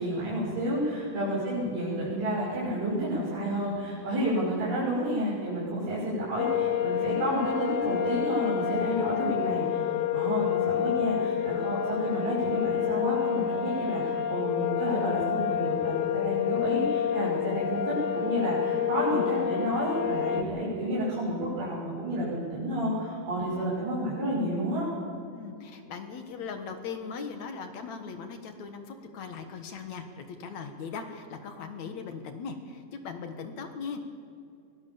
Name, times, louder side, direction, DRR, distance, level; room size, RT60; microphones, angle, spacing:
voice 1, 0.0-24.9, equal, 80° right, -9 dB, 7.8 m, -30 dB
sound 1, 6.4-20.4, left 9 dB, 85° left, 2.7 m, -28 dB
voice 2, 25.3-34.0, left 5 dB, 65° left, 7 dB, 2.6 m, -39 dB
23.0 x 18.0 x 7.2 m, 2.4 s
omnidirectional pair, 3.8 m